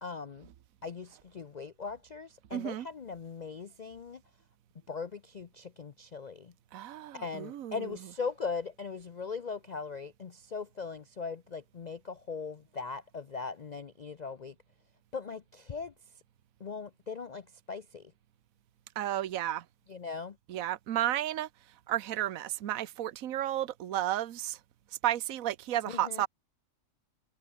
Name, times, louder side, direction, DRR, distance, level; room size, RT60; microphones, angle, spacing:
voice 1, 0.0-0.5 0.8-4.2 4.9-6.5 7.1-14.5 15.1-15.9 16.6-18.1 19.9-20.4 25.9-26.2, left 5 dB, 45° left, 0.5 m, -39 dB
voice 2, 2.5-2.9 6.7-7.9 19.0-19.6 20.5-21.5 21.9-24.6 25.0-26.3, right 12 dB, 70° right, 1.3 m, -32 dB
omnidirectional pair, 1.5 m